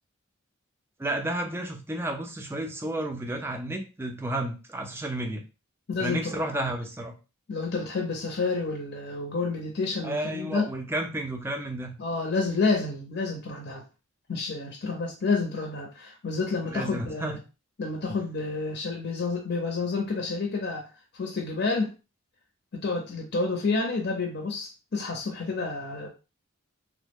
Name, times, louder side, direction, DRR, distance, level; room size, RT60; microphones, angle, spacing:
voice 1, 1.0-5.4 6.0-7.1 10.0-11.9 16.6-17.4, right 1 dB, 10° right, 4 dB, 0.4 m, -32 dB
voice 2, 5.9-6.6 7.5-10.7 12.0-13.8 14.3-17.4 17.8-21.9 22.7-26.1, left 4 dB, 50° left, 1 dB, 0.6 m, -29 dB
3.0 x 2.0 x 3.4 m, 0.31 s
head